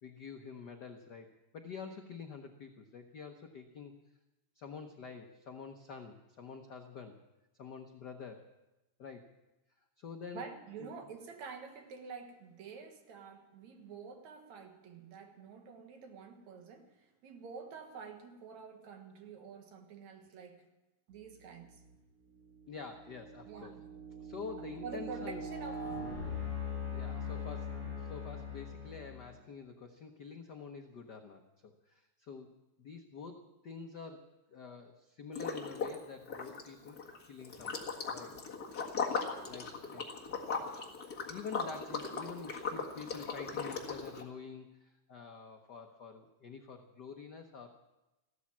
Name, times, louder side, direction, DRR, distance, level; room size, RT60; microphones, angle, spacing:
voice 1, 0.0-4.0 4.5-7.2 7.6-8.5 9.0-9.3 10.0-10.4 10.8-10.9 22.7-23.7 24.2-25.4 26.9-37.0 37.2-38.3 39.4-40.1 40.5-40.7 41.1-47.7, left 5 dB, 75° left, 0.9 m, -47 dB
voice 2, 10.3-20.7 21.1-21.8 23.5-23.9 24.8-25.8 26.2-26.4, right 5 dB, 75° right, 2.8 m, -48 dB
sound 1, 21.6-21.9 22.5-29.4, left 3 dB, 50° right, 5.8 m, -41 dB
Liquid, 35.3-36.0 36.3-44.2, left 5 dB, 40° left, 1.8 m, -38 dB
15.0 x 13.0 x 7.3 m
omnidirectional pair, 3.3 m